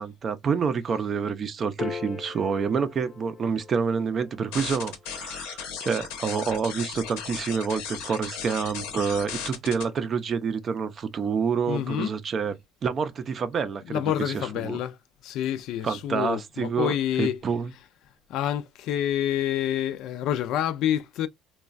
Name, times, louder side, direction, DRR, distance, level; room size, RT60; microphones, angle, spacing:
voice 1, 0.0-12.5 12.8-14.8 15.8-16.9 17.2-17.7, right 6 dB, 40° right, 0.5 m, -28 dB
Piano, 1.8-8.4, left 7 dB, 25° left, 0.6 m, -43 dB
sound 1, 4.5-9.8, left 7 dB, 90° left, 0.8 m, -36 dB
voice 2, 11.7-12.1 13.9-15.0 15.2-17.4 18.3-21.3, left 11 dB, 65° left, 0.4 m, -27 dB
3.0 x 2.2 x 2.4 m
cardioid pair, 105°, 0 cm